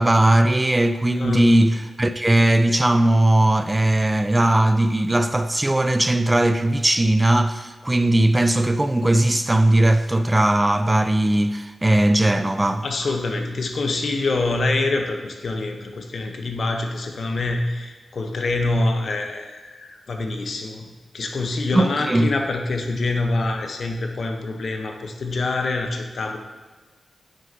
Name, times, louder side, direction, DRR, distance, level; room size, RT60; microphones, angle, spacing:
voice 1, 0.0-12.8 21.7-22.3, right 1 dB, 15° right, 0.3 m, -18 dB
voice 2, 1.1-1.6 12.8-20.9 21.1-26.4, left 2 dB, 65° left, 0.9 m, -25 dB
9.1 x 6.3 x 2.8 m
wide cardioid pair, 85°, 0 cm